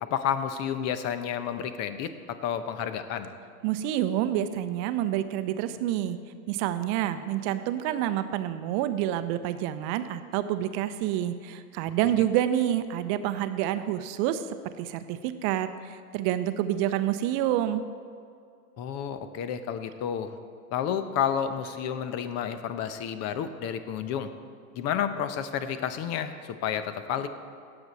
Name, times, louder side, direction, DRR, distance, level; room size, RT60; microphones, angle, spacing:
voice 1, 0.0-3.3 18.8-20.4 20.7-24.3 24.7-27.3, left 8 dB, 35° left, 11 dB, 0.8 m, -30 dB
voice 2, 3.6-6.2 6.5-14.4 14.8-17.8, right 12 dB, 40° right, 11 dB, 0.7 m, -28 dB
17.5 x 7.0 x 4.2 m, 2.3 s
hypercardioid pair, 100°, 45 cm